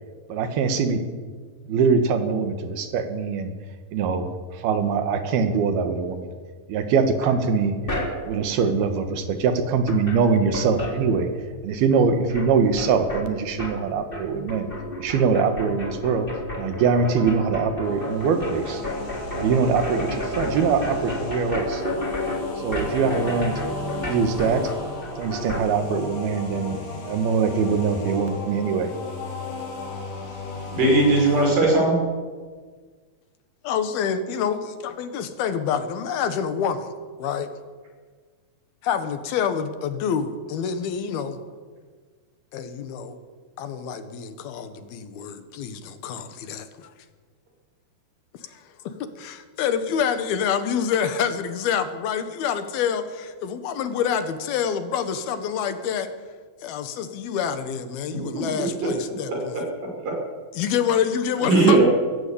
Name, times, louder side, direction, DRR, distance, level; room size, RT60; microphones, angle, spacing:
voice 1, 0.3-1.0 1.7-3.5 3.9-4.3 4.6-6.3 6.7-7.7 8.3-11.3 11.6-14.7 15.0-16.3 16.6-18.8 19.3-21.8 22.6-23.5 24.1-24.7 25.2-26.8 27.1-28.9, right 5 dB, 90° right, 8 dB, 3.6 m, -23 dB
sound 1, 7.2-8.5 9.5-9.6 9.8-11.6 11.9-25.7, left 1 dB, 15° left, 3.1 m, -32 dB
sound 2, 17.8-31.6, left 3 dB, 65° left, 4.9 m, -35 dB
voice 2, 30.7-32.0 58.3-58.5 59.3-59.6 60.1-60.2 61.4-61.9, right 2 dB, 65° right, 0 dB, 7.5 m, -18 dB
voice 3, 33.6-36.9 37.2-37.5 38.8-41.4 42.5-43.2 43.6-46.9 48.5-48.6 49.2-56.1 56.6-59.6 60.5-61.9, left 7 dB, 85° left, 10 dB, 3.3 m, -27 dB
21.5 x 14.5 x 8.6 m, 1.5 s
omnidirectional pair, 4.2 m